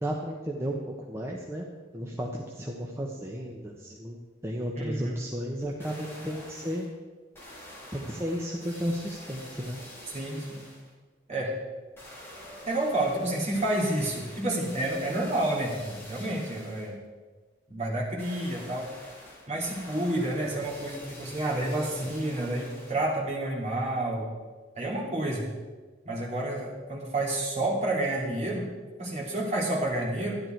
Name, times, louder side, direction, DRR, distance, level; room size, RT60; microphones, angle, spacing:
voice 1, 0.0-1.7 1.9-6.9 7.9-9.8, equal, 15° right, -1 dB, 1.0 m, -34 dB
voice 2, 4.7-5.1 10.1-10.6 11.3-11.5 12.6-16.9 17.7-18.9 19.5-24.3 24.7-25.5 26.0-28.7 29.0-30.4, right 1 dB, 40° right, -3 dB, 2.9 m, -29 dB
sound 1, 5.6-6.9 7.3-10.9 12.0-16.9 18.2-23.1 23.6-23.7, left 1 dB, 15° left, 3.5 m, -46 dB
12.5 x 11.0 x 4.5 m, 1.4 s
head